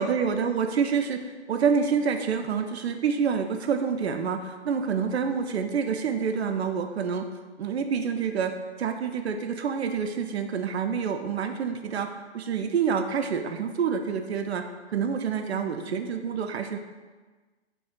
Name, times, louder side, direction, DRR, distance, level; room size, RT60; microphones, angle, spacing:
voice 1, 0.0-7.3 7.6-8.5 8.8-12.1 12.3-14.6 14.9-16.8, right 6 dB, 65° right, 6 dB, 0.5 m, -27 dB
3.3 x 2.4 x 4.4 m, 1.3 s
figure-of-eight pair, 130°, 34 cm